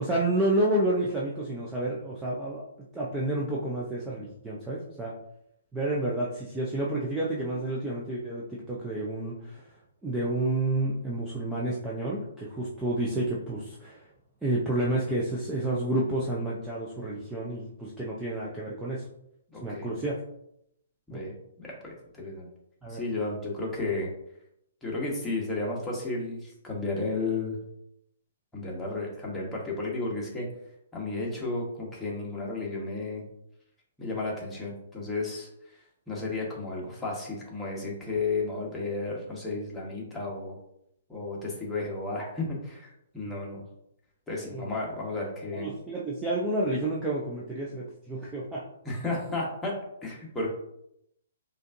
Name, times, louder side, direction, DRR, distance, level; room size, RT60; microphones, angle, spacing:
voice 1, 0.0-2.6 2.9-5.1 5.7-9.6 10.0-14.1 14.4-19.0 19.6-20.2 21.1-21.2 22.8-23.0 44.5-44.6 45.5-48.7, right 1 dB, 10° right, -6 dB, 0.6 m, -30 dB
voice 2, 19.5-19.9 21.1-22.5 22.9-24.1 24.8-27.6 28.5-30.5 30.9-33.2 34.0-35.5 36.1-40.6 41.1-43.6 44.3-45.7 48.8-49.7 50.0-50.5, left 3 dB, 10° left, -4 dB, 1.2 m, -33 dB
5.0 x 2.6 x 2.6 m, 0.77 s
hypercardioid pair, 135°, 0 cm